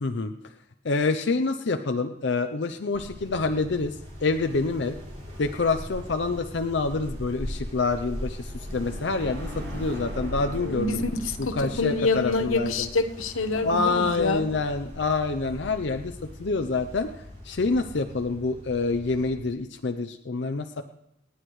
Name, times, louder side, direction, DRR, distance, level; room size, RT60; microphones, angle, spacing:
voice 1, 0.0-0.3 0.8-4.9 5.4-11.0 11.5-12.9 13.6-16.1 16.4-17.1 17.4-20.8, left 3 dB, 60° left, 7 dB, 0.6 m, -27 dB
sound 1, 2.9-19.4, equal, 35° right, 3.3 m, -40 dB
sound 2, 8.7-13.3, equal, 60° right, 6.4 m, -42 dB
voice 2, 10.6-14.4, left 3 dB, 90° left, 8 dB, 1.1 m, -27 dB
28.0 x 9.6 x 3.2 m, 0.82 s
head